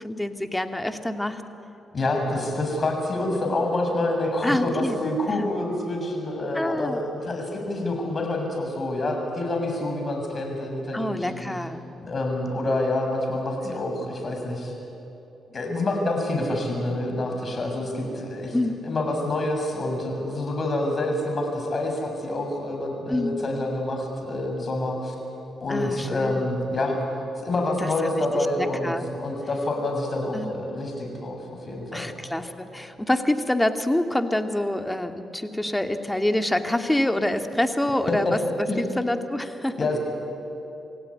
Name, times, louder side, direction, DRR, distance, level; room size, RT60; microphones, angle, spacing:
voice 1, 0.0-1.4 4.4-5.0 5.3-5.5 6.5-7.0 10.9-11.8 13.6-13.9 18.5-18.7 23.1-23.5 25.7-26.5 27.8-29.0 30.3-30.6 31.9-39.8, left 1 dB, 10° left, 7 dB, 2.1 m, -26 dB
voice 2, 1.9-11.4 12.0-14.7 15.5-18.6 18.8-25.1 25.6-27.0 27.4-32.1 38.1-38.4 38.7-38.8 39.8-40.0, left 2 dB, 45° left, 2 dB, 6.7 m, -27 dB
27.5 x 16.5 x 9.6 m, 2.9 s
supercardioid pair, 55°, 0 cm